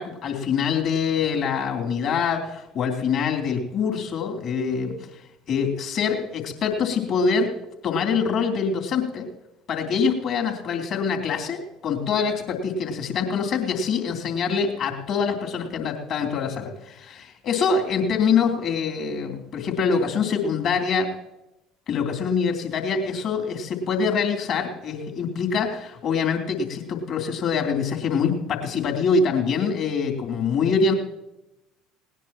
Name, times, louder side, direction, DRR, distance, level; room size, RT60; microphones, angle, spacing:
voice 1, 0.0-5.2 5.5-7.5 7.8-9.3 9.7-21.1 21.9-30.9, left 5 dB, 50° left, 2 dB, 3.2 m, -24 dB
19.5 x 19.0 x 3.0 m, 0.91 s
figure-of-eight pair, 60°, 0 cm